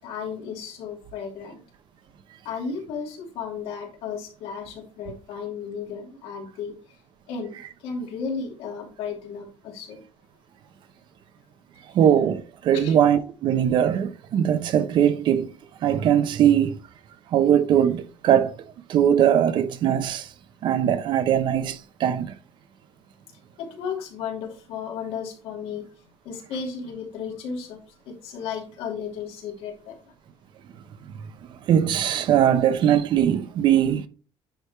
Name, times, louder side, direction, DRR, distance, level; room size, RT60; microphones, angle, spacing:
voice 1, 0.0-1.6 2.4-6.7 7.3-10.0 12.7-13.0 23.6-25.9 26.2-27.8 28.1-30.0, left 6 dB, 85° left, 2.9 m, -34 dB
voice 2, 11.9-15.5 15.8-16.8 17.3-18.5 18.9-20.3 20.6-22.3 31.7-34.1, right 9 dB, 50° right, 0.7 m, -20 dB
10.0 x 3.5 x 4.6 m
cardioid pair, 175°, 10 cm